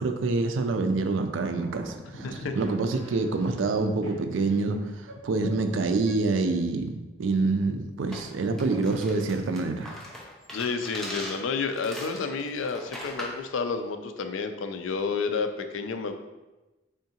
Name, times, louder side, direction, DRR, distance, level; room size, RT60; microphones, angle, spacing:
voice 1, 0.0-2.3 2.6-4.8 5.2-9.9, right 3 dB, 80° right, 7 dB, 0.4 m, -26 dB
sound 1, 1.5-6.6, right 2 dB, 55° right, 1.5 m, -47 dB
voice 2, 2.0-2.6 10.5-16.1, left 4 dB, 85° left, 7 dB, 0.4 m, -30 dB
sound 2, 8.1-13.5, left 1 dB, ahead, 0.5 m, -40 dB
3.7 x 3.4 x 2.8 m, 1.1 s
head